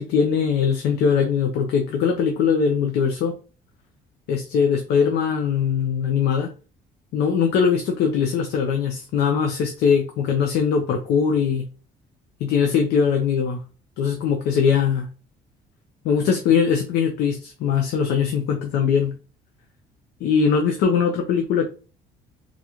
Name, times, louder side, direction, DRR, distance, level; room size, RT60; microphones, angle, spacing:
voice 1, 0.0-3.3 4.3-6.5 7.1-11.6 12.4-13.6 14.0-15.1 16.0-19.1 20.2-21.7, left 6 dB, 80° left, 4 dB, 0.6 m, -21 dB
3.9 x 2.4 x 2.9 m, 0.35 s
cardioid pair, 110°, 17 cm